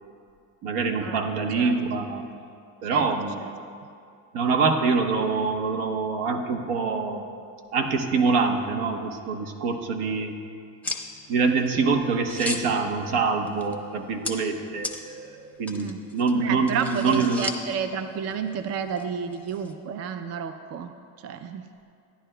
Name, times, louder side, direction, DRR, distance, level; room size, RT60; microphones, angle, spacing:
voice 1, 0.6-2.4 2.8-3.4 4.3-7.3 7.7-10.3 11.3-17.5, right 4 dB, 75° right, 5 dB, 1.1 m, -25 dB
sound 1, 10.8-19.8, left 2 dB, 5° left, 0.7 m, -39 dB
voice 2, 16.3-21.7, right 7 dB, 40° right, 8 dB, 0.5 m, -31 dB
14.0 x 10.0 x 2.2 m, 2.4 s
supercardioid pair, 100°, 40 cm